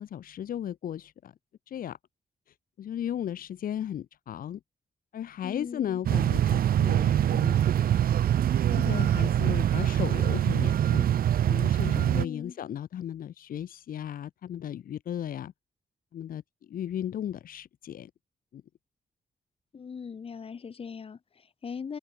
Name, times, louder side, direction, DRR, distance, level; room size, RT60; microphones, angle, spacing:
voice 1, 0.0-1.3 1.7-2.0 2.5-4.6 5.1-7.7 8.7-11.1 11.4-15.5 16.1-16.4 16.7-18.1 18.5-18.6, left 10 dB, 75° left, 1.3 m, -36 dB
voice 2, 5.4-6.0 12.0-12.6 19.7-22.0, left 6 dB, 40° left, 4.5 m, -40 dB
sound 1, 6.0-12.2, right 10 dB, 90° right, 1.3 m, -24 dB
wide cardioid pair, 175°, 15 cm